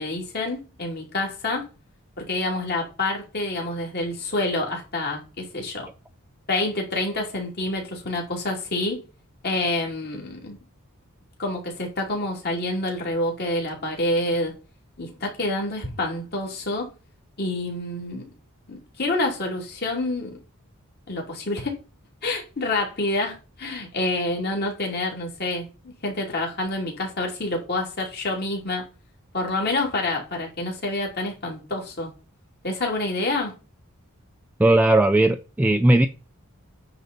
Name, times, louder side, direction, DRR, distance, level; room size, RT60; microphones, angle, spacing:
voice 1, 0.0-1.6 2.2-5.9 6.5-9.0 9.4-10.6 11.4-14.5 15.0-16.9 17.4-18.2 18.7-20.4 21.1-21.7 22.2-28.8 29.3-32.1 32.6-33.5, left 2 dB, 45° left, 3.0 m, -27 dB
voice 2, 34.6-36.1, right 1 dB, 10° right, 0.3 m, -17 dB
9.5 x 4.0 x 5.2 m
head